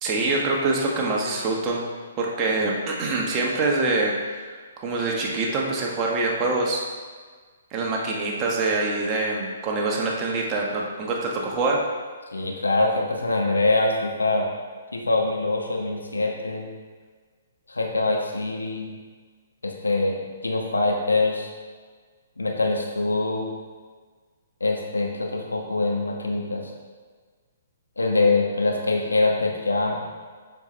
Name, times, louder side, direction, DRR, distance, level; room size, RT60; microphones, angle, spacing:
voice 1, 0.0-1.8 2.2-4.5 4.8-6.8 7.7-11.8, right 3 dB, 30° right, -1 dB, 1.3 m, -25 dB
voice 2, 12.3-14.5 14.9-16.7 17.7-18.9 19.6-20.2 20.4-21.5 22.4-23.5 24.6-26.6 28.0-30.0, left 2 dB, 85° left, 0 dB, 1.2 m, -24 dB
7.1 x 5.8 x 3.2 m, 1.5 s
figure-of-eight pair, 130°, 0 cm